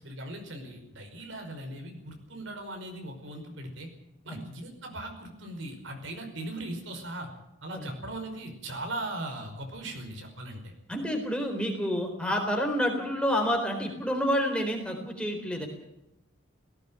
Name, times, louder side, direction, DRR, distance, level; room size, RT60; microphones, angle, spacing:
voice 1, 0.0-3.9 4.2-7.3 7.6-10.7, right 1 dB, 75° right, 4 dB, 5.4 m, -39 dB
voice 2, 10.9-15.7, equal, 5° left, 3 dB, 3.9 m, -29 dB
17.5 x 17.5 x 8.9 m, 0.85 s
head